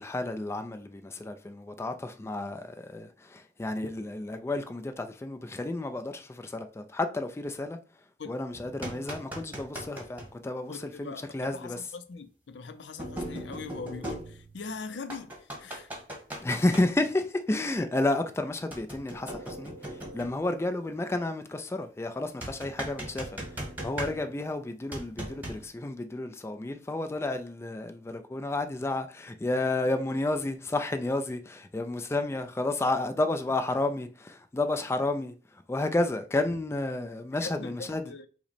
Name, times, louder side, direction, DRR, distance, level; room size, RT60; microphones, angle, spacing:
voice 1, 0.0-7.8 8.3-11.8 16.4-38.0, left 2 dB, 15° left, 0.3 m, -31 dB
sound 1, 8.5-10.3 11.7-11.8 13.0-14.7 15.1-16.8 18.7-20.4 22.4-24.5 24.9-25.7, right 1 dB, 10° right, 1.2 m, -39 dB
voice 2, 10.7-15.9 37.4-38.3, left 4 dB, 75° left, 0.5 m, -41 dB
5.7 x 2.1 x 4.1 m
head